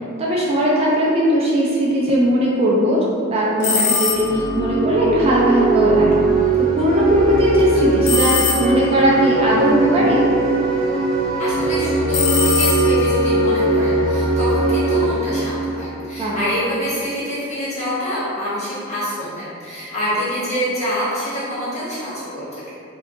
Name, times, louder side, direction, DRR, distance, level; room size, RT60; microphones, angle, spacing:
voice 1, 0.2-3.0 3.3-6.1 6.8-10.2 16.2-16.4, equal, 30° right, -5 dB, 0.4 m, -18 dB
sound 1, 3.6-4.5 8.1-9.0 12.1-13.3, left 4 dB, 55° left, 0.4 m, -21 dB
sound 2, 4.1-16.8, right 3 dB, 5° left, 0.6 m, -20 dB
voice 2, 11.4-22.6, equal, 35° left, -10 dB, 1.2 m, -26 dB
2.7 x 2.2 x 3.6 m, 2.5 s
head